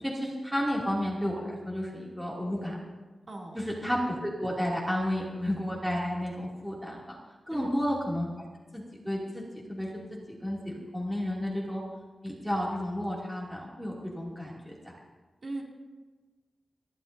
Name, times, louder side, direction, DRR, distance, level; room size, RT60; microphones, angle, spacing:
voice 1, 0.0-2.8 3.5-7.2 7.5-8.3 8.7-9.4 9.7-11.8 12.2-14.8, equal, ahead, -5 dB, 2.5 m, -32 dB
voice 2, 3.3-3.6 7.5-7.7 15.4-15.6, right 2 dB, 40° right, -2 dB, 2.6 m, -38 dB
29.5 x 11.5 x 2.7 m, 1.3 s
wide cardioid pair, 175°, 0 cm